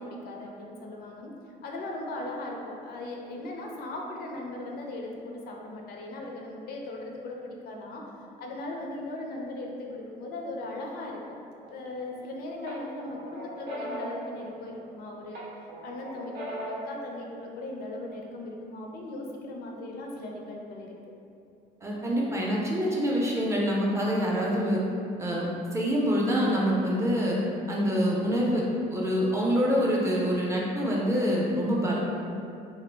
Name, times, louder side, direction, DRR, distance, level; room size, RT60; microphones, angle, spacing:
voice 1, 0.0-1.3 1.6-8.0 8.4-11.4 11.7-15.4 15.8-20.9, left 2 dB, 65° left, 0 dB, 0.4 m, -38 dB
sound 1, 11.7-12.2 12.7-14.9 15.3-16.9, equal, 70° right, 0.5 m, -39 dB
voice 2, 21.8-24.8 25.2-27.4 27.7-28.6 28.9-32.0, equal, 15° right, -4 dB, 0.4 m, -26 dB
2.3 x 2.0 x 3.2 m, 2.6 s
cardioid pair, 110°, 17 cm